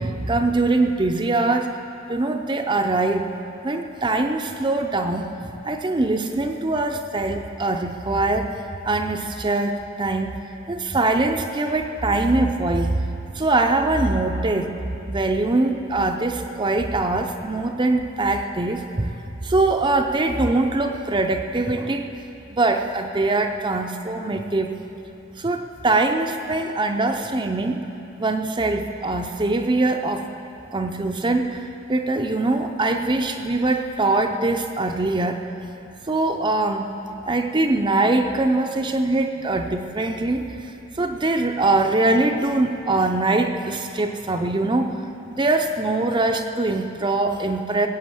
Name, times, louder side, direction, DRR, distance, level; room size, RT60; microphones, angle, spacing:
voice 1, 0.0-1.7 2.1-3.2 3.6-10.4 10.7-14.7 15.1-19.1 19.4-22.1 22.5-24.8 25.4-27.8 28.2-30.3 30.7-35.4 36.1-36.9 37.3-44.9 45.3-47.9, right 2 dB, 25° right, 5 dB, 0.6 m, -22 dB
19.0 x 7.9 x 7.8 m, 2.8 s
head